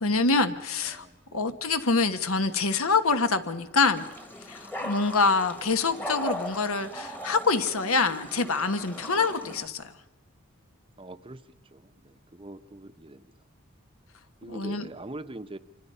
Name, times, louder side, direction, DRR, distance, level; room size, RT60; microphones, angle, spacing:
voice 1, 0.0-1.0 1.3-4.0 4.5-9.9 14.5-14.9, left 4 dB, 80° left, 10 dB, 1.4 m, -25 dB
voice 2, 0.9-1.6 4.8-5.0 11.0-11.4 11.7-13.3 14.4-15.6, right 2 dB, 25° right, 11 dB, 0.7 m, -43 dB
sound 1, 4.0-9.7, equal, 10° left, 1.3 m, -38 dB
27.0 x 25.0 x 5.6 m, 1.1 s
head